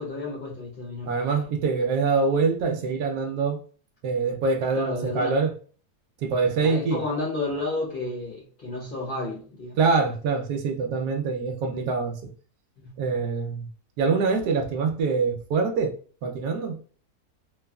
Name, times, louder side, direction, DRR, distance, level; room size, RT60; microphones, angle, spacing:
voice 1, 0.0-1.5 4.7-5.4 6.4-9.8 12.8-13.0, left 2 dB, 45° left, 0.7 m, -32 dB
voice 2, 1.1-3.6 4.0-5.5 6.2-7.0 9.8-12.2 13.0-13.7 14.0-15.9 16.2-16.8, right 4 dB, 80° right, 1.2 m, -24 dB
3.1 x 2.3 x 2.2 m
omnidirectional pair, 1.7 m